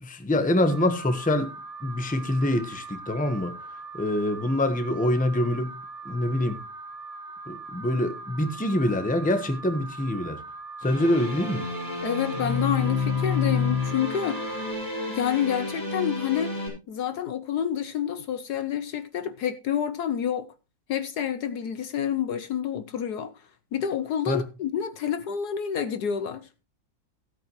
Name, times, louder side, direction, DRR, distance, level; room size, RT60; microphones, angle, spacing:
voice 1, 0.0-1.5 1.8-3.6 3.9-5.7 6.0-6.6 7.5-10.4 10.8-11.6 24.3-24.4, left 1 dB, 5° left, 0.9 m, -25 dB
Alarm, 0.7-14.7, right 3 dB, 40° right, 1.6 m, -41 dB
sound 1, 10.8-16.7, left 4 dB, 10° right, 6.1 m, -29 dB
voice 2, 12.0-14.5 15.1-16.6 16.9-20.5 20.9-26.5, left 9 dB, 65° left, 1.2 m, -28 dB
16.0 x 8.7 x 3.1 m
omnidirectional pair, 2.0 m